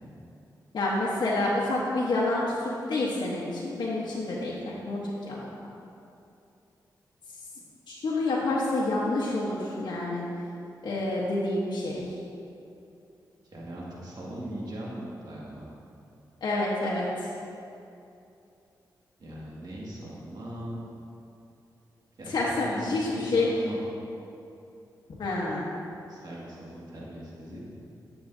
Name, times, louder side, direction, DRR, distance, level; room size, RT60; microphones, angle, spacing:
voice 1, 0.7-5.5 7.9-10.2 10.8-12.0 16.4-17.3 22.3-23.5 25.2-25.7, left 2 dB, 70° left, -6 dB, 1.1 m, -28 dB
voice 2, 13.5-15.7 19.2-20.8 22.2-23.8 26.1-27.6, right 1 dB, 60° right, -5 dB, 2.0 m, -39 dB
11.0 x 7.2 x 2.7 m, 2.7 s
cardioid pair, 60°, 8 cm